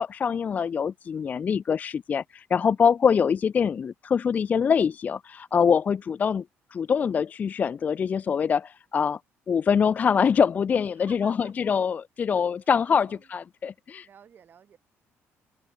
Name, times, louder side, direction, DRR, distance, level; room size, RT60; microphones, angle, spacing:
voice 1, 0.0-6.4 6.7-9.2 9.5-14.1, left 6 dB, 30° left, 0.4 m, -24 dB
voice 2, 10.9-12.0 12.3-12.7 13.0-13.3 14.0-14.8, right 8 dB, 40° right, 6.4 m, -54 dB
cardioid pair, 140°, 5 cm